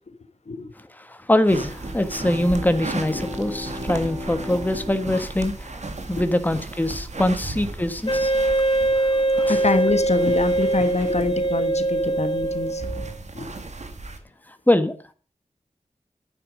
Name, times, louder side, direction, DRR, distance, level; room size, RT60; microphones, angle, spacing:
voice 1, 1.0-8.3 9.0-9.6 14.7-15.0, left 1 dB, 15° left, 1.5 m, -23 dB
sound 1, 1.5-14.2, right 2 dB, 65° right, 2.0 m, -36 dB
Bowed string instrument, 1.7-6.5, left 1 dB, 40° right, 4.0 m, -37 dB
Wind instrument woodwind instrument, 8.1-13.1, right 2 dB, 45° left, 2.7 m, -22 dB
voice 2, 9.4-12.8 13.3-13.5, left 3 dB, 60° left, 1.3 m, -25 dB
10.5 x 9.6 x 5.0 m
wide cardioid pair, 65°, 13 cm